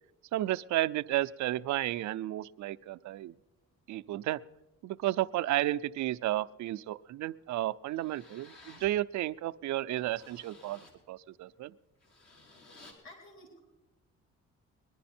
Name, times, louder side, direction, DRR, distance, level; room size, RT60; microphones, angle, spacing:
voice 1, 0.3-3.3 3.9-4.4 4.8-11.7, right 15 dB, 70° right, 14 dB, 0.5 m, -32 dB
sound 1, 7.3-7.4 7.9-8.9 9.4-9.5 9.9-11.0 11.9-12.9, left 2 dB, 55° left, 3.8 m, -56 dB
voice 2, 13.0-13.6, left 1 dB, 40° left, 1 dB, 3.6 m, -51 dB
21.5 x 11.0 x 4.3 m, 1.1 s
cardioid pair, 90°, 30 cm